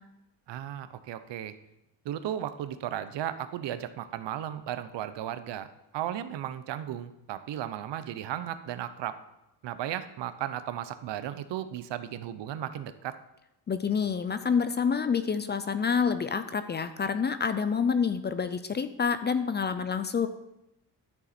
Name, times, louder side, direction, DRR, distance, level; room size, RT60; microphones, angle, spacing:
voice 1, 0.5-1.5 2.0-5.7 5.9-9.2 9.6-13.2, right 11 dB, 85° right, 12 dB, 0.8 m, -35 dB
voice 2, 13.7-20.3, left 6 dB, 25° left, 11 dB, 0.4 m, -28 dB
12.0 x 7.0 x 4.3 m, 0.90 s
wide cardioid pair, 170°, 42 cm